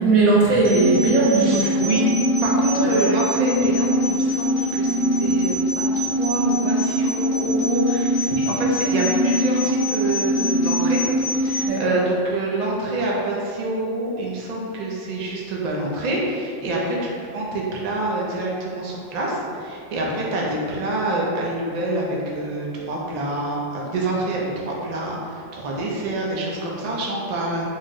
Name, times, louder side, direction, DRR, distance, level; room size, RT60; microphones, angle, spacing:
voice 1, 0.0-1.9 2.8-3.0 11.6-11.9, right 3 dB, 90° right, -5 dB, 1.2 m, -19 dB
sound 1, 0.6-11.7, equal, 75° right, 1.6 m, -22 dB
voice 2, 1.3-2.0 2.4-11.0 11.4-27.6, right 2 dB, 50° right, -3 dB, 0.4 m, -26 dB
4.1 x 2.0 x 3.6 m, 2.3 s
omnidirectional pair, 1.4 m